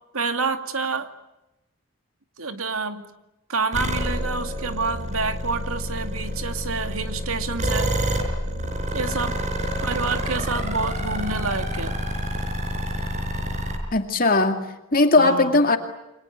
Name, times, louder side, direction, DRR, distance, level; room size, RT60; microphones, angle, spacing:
voice 1, 0.1-1.1 2.4-3.1 3.5-8.0 8.9-9.4 9.8-12.0 15.2-15.5, right 4 dB, 80° right, 8 dB, 2.4 m, -28 dB
sound 1, 3.7-13.8, equal, 35° right, 4.9 m, -28 dB
voice 2, 13.9-15.8, left 3 dB, 40° left, 6 dB, 2.3 m, -19 dB
28.5 x 25.0 x 8.2 m, 0.93 s
head